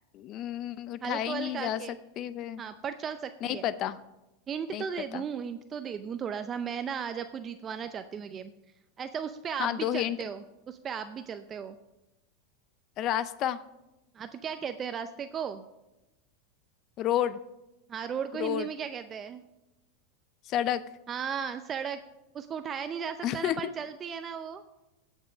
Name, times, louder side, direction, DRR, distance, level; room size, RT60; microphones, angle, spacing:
voice 1, 0.1-1.8 2.2-2.6 3.4-4.0 4.7-4.8 5.1-5.2 9.6-10.2 13.0-13.6 17.0-17.4 18.4-18.7 20.5-20.8 23.2-23.6, left 11 dB, 45° left, 15 dB, 0.4 m, -30 dB
voice 2, 1.0-2.0 2.6-3.6 4.5-8.5 9.0-11.8 14.1-15.7 17.9-19.4 21.1-22.0 22.3-24.6, right 7 dB, 30° right, 9 dB, 0.5 m, -36 dB
16.5 x 5.5 x 5.0 m, 0.98 s
supercardioid pair, 120°, 0 cm